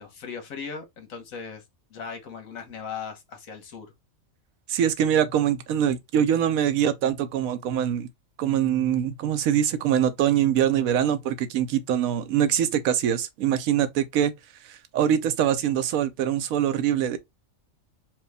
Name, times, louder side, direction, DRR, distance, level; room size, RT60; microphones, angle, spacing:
voice 1, 0.0-1.6 1.9-3.9, left 6 dB, 75° left, 1.5 m, -38 dB
voice 2, 4.7-8.1 8.4-14.3 14.7-17.2, right 9 dB, 90° right, 1.1 m, -23 dB
4.7 x 2.3 x 3.4 m
omnidirectional pair, 1.4 m